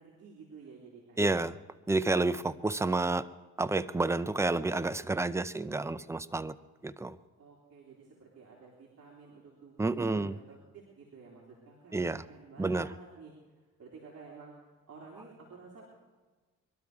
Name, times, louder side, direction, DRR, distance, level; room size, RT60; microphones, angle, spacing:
voice 1, 0.0-1.3 7.4-14.5 14.9-16.0, right 4 dB, 55° right, -4 dB, 3.2 m, -52 dB
voice 2, 1.2-1.5 1.9-3.3 3.6-6.5 6.8-7.2 9.8-10.4 11.9-12.2 12.6-12.9, right 2 dB, 10° right, 14 dB, 0.5 m, -30 dB
22.0 x 12.5 x 4.7 m, 1.3 s
cardioid pair, 90°, 30 cm